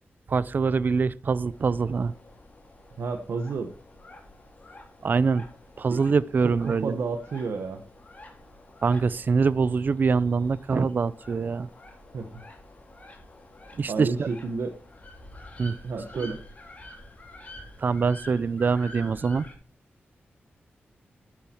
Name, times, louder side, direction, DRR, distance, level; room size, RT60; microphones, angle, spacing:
voice 1, 0.3-2.1 5.0-5.4 5.8-7.0 8.8-11.7 13.8-14.3 15.6-15.8 17.8-19.5, right 5 dB, 50° right, 0.5 m, -24 dB
sound 1, 1.5-19.5, left 1 dB, 35° left, 3.9 m, -48 dB
voice 2, 3.0-3.7 5.9-6.0 6.4-7.8 12.1-12.4 13.9-14.7 15.8-16.4, right 4 dB, 80° right, 1.2 m, -31 dB
10.5 x 9.6 x 4.5 m
wide cardioid pair, 115°, 4 cm